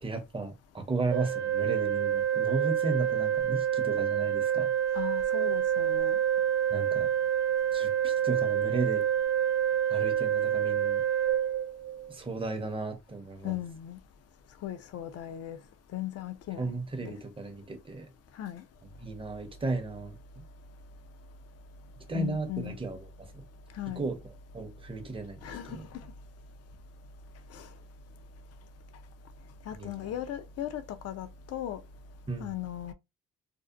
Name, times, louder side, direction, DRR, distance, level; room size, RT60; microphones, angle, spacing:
voice 1, 0.0-4.7 6.7-7.1 7.7-9.1 9.9-11.0 12.1-13.5 16.6-18.1 19.0-20.4 22.1-23.4 24.0-24.2 24.5-25.8 29.8-30.1 32.3-32.5, right 3 dB, 20° right, 0.6 m, -35 dB
Organ, 1.1-12.1, right 10 dB, 65° right, 0.6 m, -27 dB
voice 2, 4.9-6.2 13.4-14.0 14.6-15.6 15.9-16.7 17.0-17.1 18.4-18.6 22.1-22.8 23.8-24.0 25.4-26.1 27.5-27.7 29.7-31.8 32.4-32.9, left 12 dB, 55° left, 0.5 m, -37 dB
2.7 x 2.0 x 2.3 m
cardioid pair, 90°, 30 cm